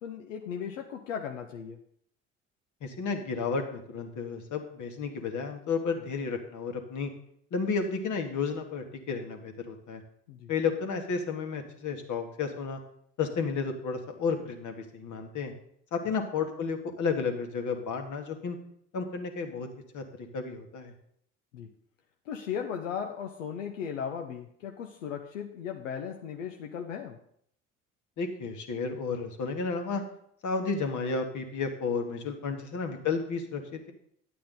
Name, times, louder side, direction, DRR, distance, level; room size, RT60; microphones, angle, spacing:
voice 1, 0.0-1.8 10.3-10.5 21.5-21.7 22.3-27.2 32.5-32.6, left 7 dB, 85° left, 4 dB, 0.7 m, -37 dB
voice 2, 2.8-7.1 7.5-10.0 10.5-12.8 13.2-15.5 15.9-18.6 18.9-19.7 19.9-20.9 28.2-30.0 30.4-33.9, left 5 dB, 50° left, 5 dB, 1.7 m, -32 dB
10.5 x 8.4 x 3.9 m, 0.68 s
hypercardioid pair, 55°, 37 cm